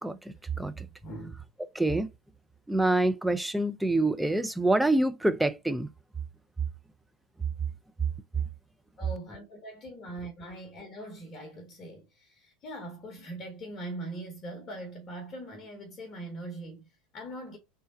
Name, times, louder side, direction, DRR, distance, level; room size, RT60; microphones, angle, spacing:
voice 1, 0.0-0.9 1.7-2.1 2.7-5.9 8.4-8.5, right 2 dB, 5° right, 0.4 m, -26 dB
voice 2, 1.0-1.4 9.0-17.6, right 1 dB, 30° left, 0.9 m, -41 dB
3.3 x 3.2 x 4.1 m
figure-of-eight pair, 75°, 0 cm